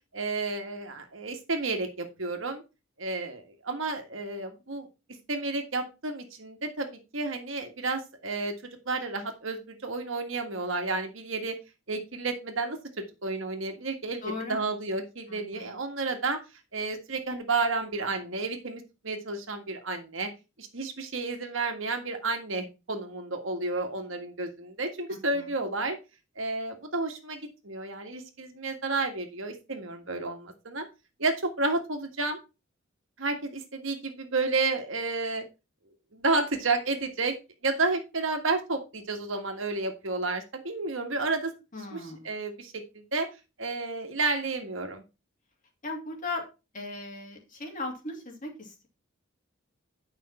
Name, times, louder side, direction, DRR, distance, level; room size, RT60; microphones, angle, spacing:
voice 1, 0.1-2.6 3.0-4.9 5.3-8.5 8.8-11.5 11.9-14.2 14.5-16.4 16.7-20.3 20.6-26.0 26.3-27.4 27.6-30.8 31.2-32.4 33.2-35.4 36.1-37.3 37.6-41.5 41.9-43.3 43.6-45.0, right 3 dB, 70° right, 5 dB, 1.7 m, -31 dB
voice 2, 14.2-14.6 15.3-15.7 25.1-25.5 41.7-42.3 45.8-46.5 46.7-48.9, left 2 dB, 40° left, 1 dB, 2.5 m, -38 dB
9.3 x 5.6 x 4.2 m, 0.28 s
head